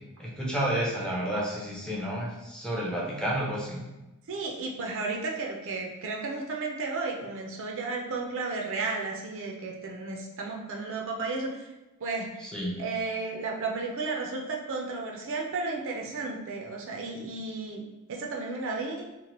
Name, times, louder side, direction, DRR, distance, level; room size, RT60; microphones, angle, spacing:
voice 1, 0.2-3.8 12.4-12.8, right 1 dB, 5° left, -4 dB, 0.5 m, -31 dB
voice 2, 4.3-11.6 12.0-12.5 12.8-17.8 18.1-19.0, right 3 dB, 60° right, 0 dB, 0.5 m, -33 dB
2.9 x 2.1 x 2.9 m, 1.0 s
head